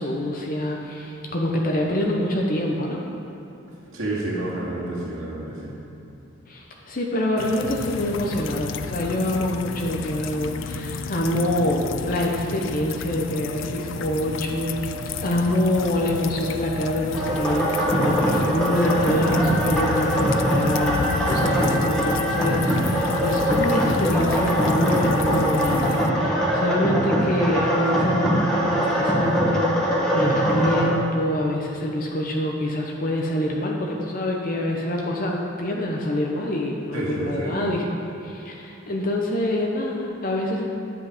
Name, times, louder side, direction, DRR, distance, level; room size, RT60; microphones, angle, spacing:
voice 1, 0.0-3.0 6.5-37.9 38.2-40.6, left 1 dB, 45° left, -1 dB, 0.8 m, -26 dB
voice 2, 3.9-5.8 21.4-21.6 36.9-37.7, right 1 dB, 90° right, -5 dB, 2.2 m, -30 dB
sound 1, 7.4-26.1, left 6 dB, 65° left, 0.3 m, -32 dB
sound 2, 13.3-19.4 21.7-21.8 22.0-22.1, right 2 dB, 65° right, 0.7 m, -39 dB
sound 3, 17.1-30.8, equal, 5° left, 1.5 m, -22 dB
10.0 x 8.2 x 5.0 m, 2.9 s
head